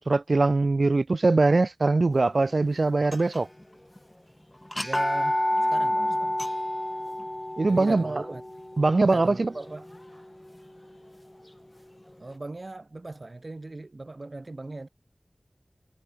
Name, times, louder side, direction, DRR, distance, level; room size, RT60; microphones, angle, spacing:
voice 1, 0.0-3.5 7.6-8.2 8.8-9.5, right 3 dB, 80° right, 0.4 m, -22 dB
sound 1, 3.1-3.6 4.0-4.1 4.7-10.6, left 1 dB, 20° left, 0.7 m, -29 dB
voice 2, 4.8-5.4 5.7-6.5 7.7-8.4 9.0-9.9 12.2-14.9, right 2 dB, 60° right, 2.5 m, -38 dB
wide cardioid pair, 50°, 0 cm